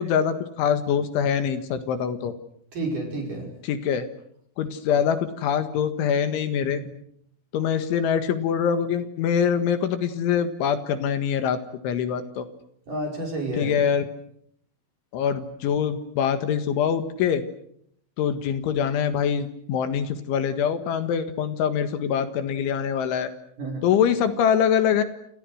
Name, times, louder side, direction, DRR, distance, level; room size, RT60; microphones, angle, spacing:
voice 1, 0.0-2.3 3.6-4.1 4.6-6.8 7.5-11.6 11.8-12.5 13.5-14.1 15.1-17.4 18.2-23.3 23.8-25.0, left 8 dB, 70° left, 10 dB, 3.8 m, -24 dB
voice 2, 2.7-3.5 6.6-6.8 12.9-13.8 23.6-23.9, right 2 dB, 40° right, 2 dB, 6.5 m, -30 dB
29.0 x 28.5 x 6.4 m, 0.70 s
omnidirectional pair, 6.0 m